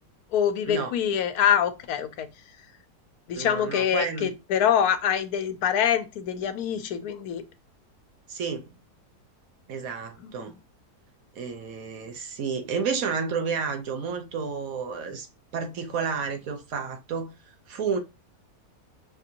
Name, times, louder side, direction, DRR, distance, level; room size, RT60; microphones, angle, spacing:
voice 1, 0.3-2.3 3.3-7.4 10.2-10.5, left 9 dB, 80° left, 1.1 m, -25 dB
voice 2, 3.3-4.3 8.3-8.7 9.7-10.5 11.4-15.3 15.5-17.3 17.7-18.0, right 5 dB, 70° right, 1.1 m, -31 dB
5.9 x 2.5 x 2.7 m
omnidirectional pair, 1.6 m